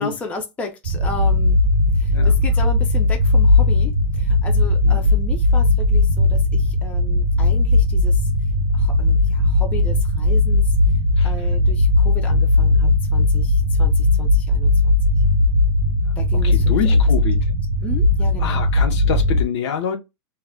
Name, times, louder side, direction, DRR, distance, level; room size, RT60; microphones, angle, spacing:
voice 1, 0.0-1.6 1.9-8.3 8.7-10.7 11.2-14.9 16.2-17.0 17.8-18.6, left 3 dB, 10° left, 0.3 m, -34 dB
sound 1, 0.8-19.4, left 2 dB, 55° right, 0.8 m, -17 dB
voice 2, 11.2-11.5 16.3-17.4 18.4-20.0, left 7 dB, 65° left, 0.7 m, -26 dB
2.2 x 2.1 x 3.4 m
hypercardioid pair, 135°, 16 cm